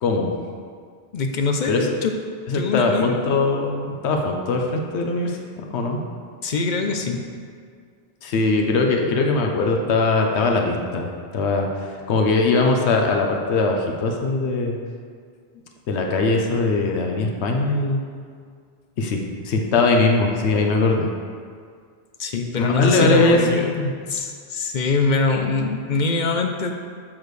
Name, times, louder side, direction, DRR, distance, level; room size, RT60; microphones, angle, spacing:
voice 1, 1.1-2.1 2.5-3.4 6.4-7.3 22.2-26.7, left 4 dB, 55° left, 4 dB, 0.6 m, -23 dB
voice 2, 2.5-6.0 8.2-11.7 12.1-14.8 15.9-18.0 19.0-19.2 19.4-21.1 22.6-23.7, left 3 dB, 85° left, 2 dB, 1.0 m, -21 dB
7.4 x 6.6 x 3.1 m, 2.1 s
omnidirectional pair, 1.1 m